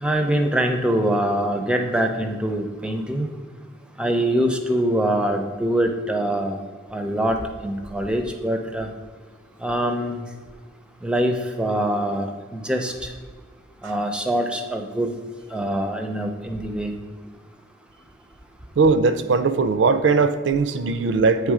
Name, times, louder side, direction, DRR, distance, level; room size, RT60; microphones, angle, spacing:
voice 1, 0.0-3.3 4.0-6.6 6.9-7.4 7.6-8.9 9.6-10.2 11.0-12.9 13.8-15.1 15.5-16.9, right 1 dB, 5° right, 0.5 m, -24 dB
voice 2, 18.8-21.5, right 4 dB, 70° right, 0.4 m, -19 dB
8.2 x 3.4 x 4.8 m
head